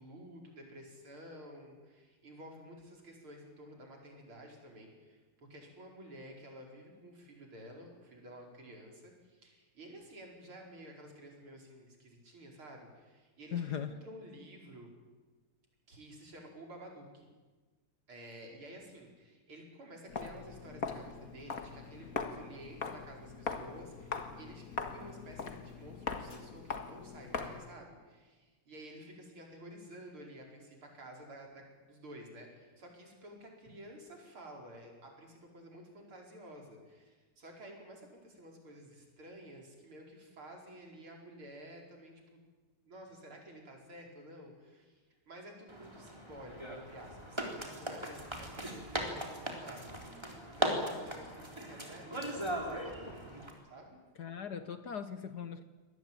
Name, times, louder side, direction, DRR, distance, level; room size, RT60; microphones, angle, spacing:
voice 1, 0.0-14.9 15.9-17.3 18.1-42.4 42.8-53.2 53.6-54.0, right 1 dB, 70° right, 1 dB, 5.7 m, -52 dB
voice 2, 13.5-14.0 54.2-55.6, left 8 dB, 55° left, 11 dB, 1.3 m, -39 dB
Walk footsteps, 20.1-27.7, left 5 dB, 40° left, 2.0 m, -41 dB
sound 1, 45.7-53.5, right 1 dB, 10° right, 3.6 m, -39 dB
24.5 x 19.0 x 8.9 m, 1.3 s
omnidirectional pair, 2.4 m